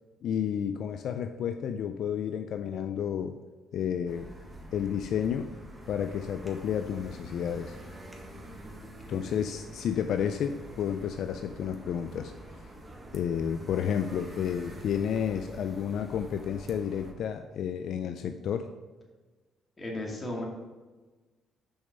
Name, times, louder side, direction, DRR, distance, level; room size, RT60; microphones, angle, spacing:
voice 1, 0.2-3.4 3.7-4.3 4.7-5.5 5.9-7.8 9.1-12.3 13.1-18.7, left 8 dB, 70° left, 8 dB, 0.4 m, -31 dB
sound 1, 4.0-17.1, right 1 dB, 15° right, 1.6 m, -46 dB
voice 2, 19.8-20.4, left 1 dB, 25° left, -1 dB, 2.3 m, -35 dB
6.9 x 5.4 x 5.3 m, 1.3 s
cardioid pair, 80°, 0 cm